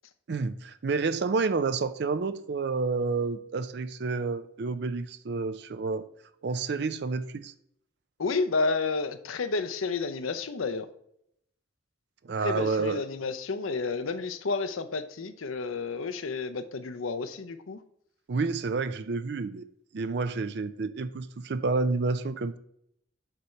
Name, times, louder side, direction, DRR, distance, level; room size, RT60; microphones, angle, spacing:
voice 1, 0.3-6.1 6.4-7.5 12.2-13.0 18.3-19.7 19.9-22.6, right 4 dB, 55° right, 0.4 m, -29 dB
voice 2, 8.2-10.9 12.4-17.8, left 4 dB, 90° left, 0.6 m, -31 dB
6.8 x 3.2 x 5.7 m
head